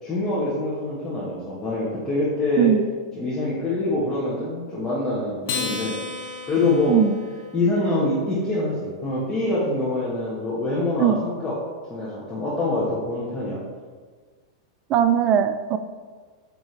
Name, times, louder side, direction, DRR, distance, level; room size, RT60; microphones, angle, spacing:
voice 1, 0.0-2.7 3.1-7.0 7.5-11.5 11.9-13.6, left 2 dB, 20° left, -8 dB, 1.5 m, -25 dB
Acoustic guitar, 5.4-8.1, left 4 dB, 60° left, 1.1 m, -33 dB
voice 2, 14.9-15.8, right 9 dB, 35° right, 12 dB, 0.4 m, -19 dB
8.9 x 3.3 x 3.3 m, 1.5 s
hypercardioid pair, 100°, 2 cm